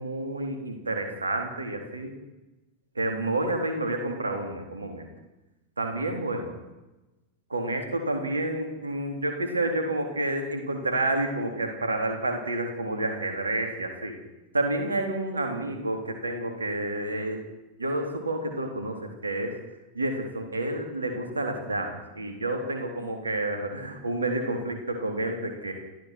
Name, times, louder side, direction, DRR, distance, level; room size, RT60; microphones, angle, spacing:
voice 1, 0.0-2.1 3.0-5.1 5.8-6.5 7.5-14.1 14.5-17.4 17.8-19.6 19.9-25.7, right 2 dB, 75° right, 3 dB, 3.8 m, -29 dB
30.0 x 14.5 x 6.2 m, 1.1 s
figure-of-eight pair, 90°, 0 cm